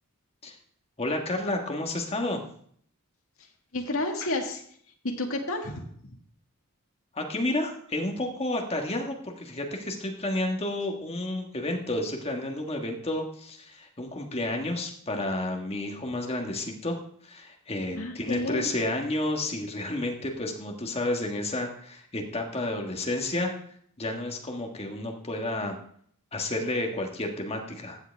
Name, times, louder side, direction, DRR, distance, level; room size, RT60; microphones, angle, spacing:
voice 1, 1.0-2.4 7.1-17.0 17.2-23.5 24.0-25.8 26.3-28.0, left 1 dB, 25° left, 2 dB, 1.5 m, -31 dB
voice 2, 3.7-4.6 5.2-6.2 18.0-18.7, left 2 dB, 65° left, 1 dB, 1.8 m, -31 dB
14.5 x 7.9 x 3.4 m, 0.62 s
head